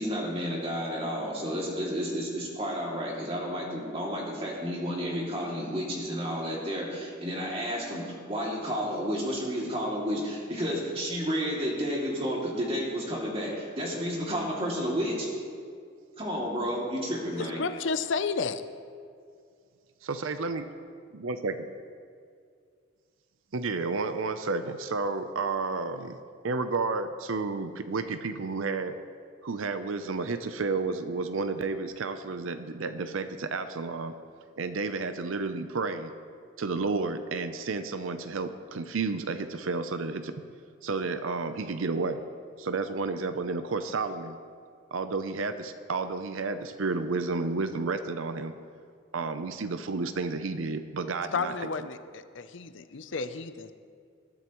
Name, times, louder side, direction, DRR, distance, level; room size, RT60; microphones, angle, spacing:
voice 1, 0.0-15.3 16.2-17.6, equal, 30° right, -3 dB, 2.5 m, -31 dB
voice 2, 17.3-18.8 51.3-53.7, left 4 dB, 65° left, 11 dB, 0.6 m, -32 dB
voice 3, 20.0-20.6 21.2-21.6 23.5-26.2 26.4-29.0 29.4-34.1 34.6-36.1 36.6-40.4 40.8-42.2 42.6-44.4 44.9-48.5 49.1-51.5, right 3 dB, 80° right, 9 dB, 0.6 m, -31 dB
20.5 x 12.5 x 3.1 m, 2.2 s
head